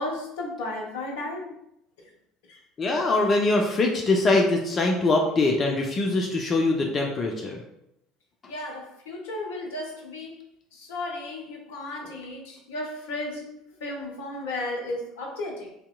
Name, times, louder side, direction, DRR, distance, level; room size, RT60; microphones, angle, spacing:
voice 1, 0.0-1.5 2.5-2.6 8.5-10.4 10.7-13.5 13.8-15.7, left 2 dB, 70° left, 0 dB, 0.7 m, -34 dB
voice 2, 2.8-7.6, left 2 dB, 35° left, 1 dB, 0.5 m, -23 dB
3.5 x 2.8 x 2.3 m, 0.81 s
figure-of-eight pair, 65°, 0 cm